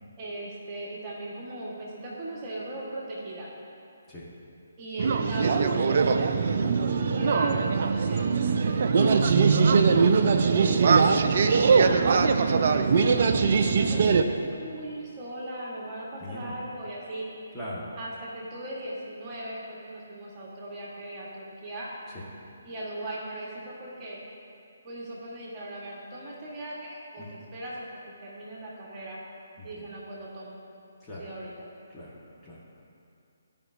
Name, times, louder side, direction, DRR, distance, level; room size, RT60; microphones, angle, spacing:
voice 1, 0.2-3.5 4.8-8.2 8.6-12.0 12.6-17.3 18.0-21.9 22.6-24.2 24.8-29.2 29.6-30.6 31.2-31.7, right 1 dB, 25° right, -5 dB, 1.3 m, -39 dB
sound 1, 5.0-14.2, right 5 dB, 50° right, 0.4 m, -21 dB
voice 2, 16.2-16.5 17.5-17.8 27.2-27.3 29.6-29.7 31.0-31.2 31.9-32.2 32.4-32.6, left 1 dB, 10° left, -9 dB, 1.3 m, -39 dB
13.0 x 5.1 x 2.6 m, 2.6 s
figure-of-eight pair, 140°, 0 cm